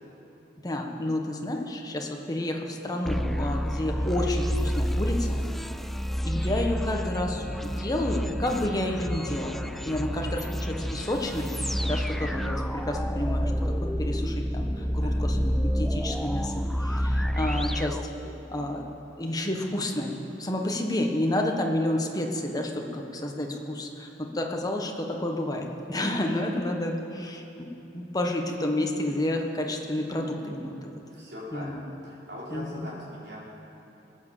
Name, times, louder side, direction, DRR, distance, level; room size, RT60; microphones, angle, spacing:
voice 1, 0.6-5.4 6.2-7.4 7.8-11.5 11.8-13.5 13.8-18.0 18.5-18.8 19.2-20.1 20.4-27.7 27.9-30.8 31.5-31.8 32.5-32.9, left 1 dB, 20° left, 2 dB, 1.4 m, -30 dB
sound 1, 3.0-18.7, equal, ahead, 0.3 m, -29 dB
voice 2, 31.1-33.4, left 1 dB, 70° right, -7 dB, 4.2 m, -41 dB
20.5 x 8.8 x 7.3 m, 2.9 s
head